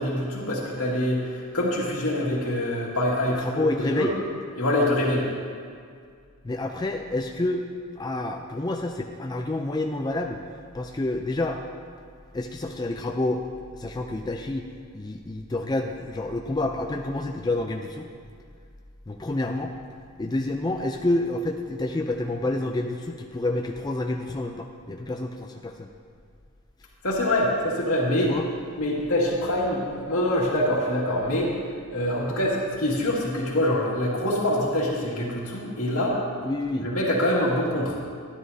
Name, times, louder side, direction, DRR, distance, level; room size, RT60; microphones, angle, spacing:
voice 1, 0.0-4.1 4.6-5.3 27.0-28.3 28.8-31.5 31.9-36.2 36.8-38.0, left 1 dB, 80° left, -4 dB, 2.1 m, -25 dB
voice 2, 3.4-4.1 6.4-7.6 8.0-10.4 10.7-11.6 12.3-13.4 13.7-14.7 14.9-18.1 19.1-19.7 20.2-25.9 28.2-28.5 36.4-36.9, left 2 dB, 20° left, 3 dB, 0.4 m, -28 dB
12.5 x 10.0 x 2.7 m, 2.1 s
head